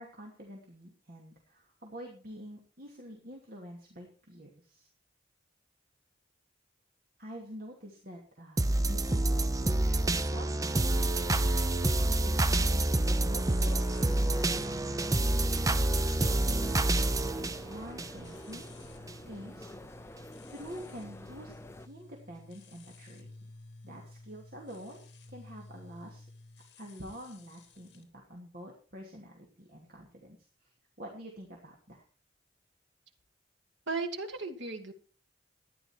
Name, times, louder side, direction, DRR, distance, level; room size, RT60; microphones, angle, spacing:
voice 1, 0.0-4.9 7.2-9.3 9.6-10.0 10.3-11.1 12.2-14.8 16.2-18.7 19.3-19.7 20.5-21.5 21.9-23.3 23.8-25.0 25.3-26.3 26.8-32.0, equal, 50° right, -1 dB, 2.7 m, -47 dB
sound 1, 8.6-18.6 19.1-19.2, right 2 dB, 20° right, 0.6 m, -28 dB
sound 2, 13.3-28.0, left 2 dB, 60° left, 3.0 m, -52 dB
sound 3, 13.6-21.9, left 1 dB, 15° left, 0.7 m, -49 dB
voice 2, 33.9-34.9, right 4 dB, 85° right, 5 dB, 2.2 m, -35 dB
13.5 x 10.5 x 4.6 m, 0.39 s
head